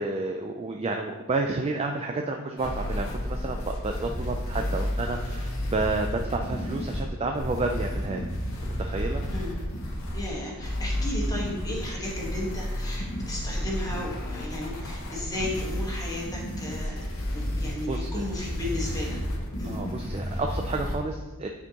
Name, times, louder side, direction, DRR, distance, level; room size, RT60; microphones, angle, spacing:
voice 1, 0.0-8.3 8.6-9.2 17.9-18.2 19.6-21.5, right 3 dB, 25° right, 3 dB, 0.3 m, -30 dB
sound 1, 2.6-21.0, equal, 65° left, 1.2 m, -31 dB
voice 2, 10.1-17.0 17.3-19.2 19.6-19.8, left 1 dB, 15° left, -3 dB, 1.3 m, -34 dB
9.6 x 4.4 x 2.9 m, 1.2 s
head